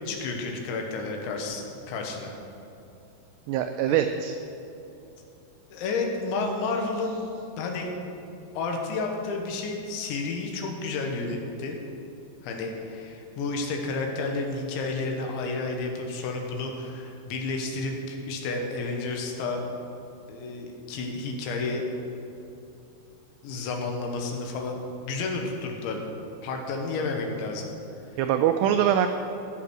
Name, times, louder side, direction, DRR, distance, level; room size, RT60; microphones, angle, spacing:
voice 1, 0.0-2.3 3.9-4.1 5.7-7.2 7.6-7.9 8.5-11.8 12.4-19.6 20.3-21.8 23.4-26.0 26.4-27.7, left 3 dB, 80° left, 2 dB, 3.5 m, -31 dB
voice 2, 3.5-4.4 28.2-29.1, right 9 dB, 90° right, 7 dB, 2.4 m, -23 dB
16.0 x 6.9 x 6.2 m, 2.8 s
omnidirectional pair, 5.4 m